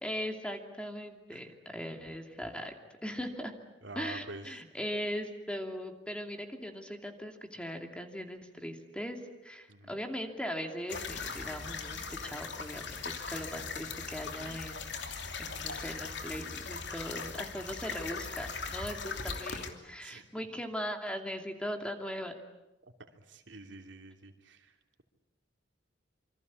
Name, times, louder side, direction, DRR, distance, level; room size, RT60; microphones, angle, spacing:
voice 1, 0.0-2.7 3.0-3.5 3.9-15.0 15.4-22.4, equal, 5° left, 4 dB, 2.6 m, -39 dB
voice 2, 3.8-4.5 9.7-10.0 20.0-20.3 23.3-25.0, right 2 dB, 75° right, 4 dB, 3.1 m, -47 dB
sound 1, 10.9-19.7, left 5 dB, 65° left, 3.0 m, -39 dB
27.5 x 25.5 x 8.5 m, 0.98 s
head